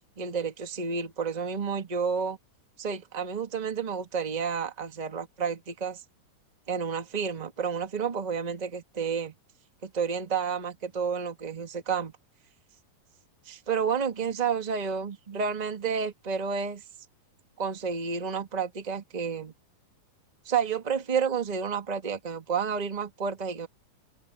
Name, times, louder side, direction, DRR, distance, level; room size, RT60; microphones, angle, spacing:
voice 1, 0.2-2.4 2.8-6.0 6.7-9.3 9.8-12.1 13.4-16.8 17.6-19.5 20.4-23.7, right 6 dB, 20° right, 1.1 m, -30 dB
open air
omnidirectional pair, 4.2 m